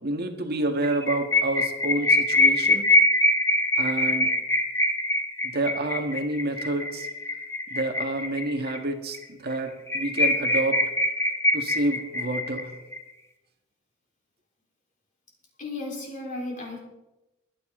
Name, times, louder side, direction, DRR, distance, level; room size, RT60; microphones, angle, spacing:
voice 1, 0.0-2.9 3.8-4.3 5.4-7.1 7.7-10.8 11.5-12.7, right 2 dB, 50° right, 4 dB, 1.8 m, -28 dB
sound 1, 0.8-8.8 9.1-9.2 9.5-9.6 9.9-13.0, left 2 dB, 15° left, 1.3 m, -23 dB
voice 2, 15.6-16.8, left 2 dB, 40° left, -1 dB, 4.0 m, -34 dB
23.0 x 10.0 x 3.8 m, 1.0 s
head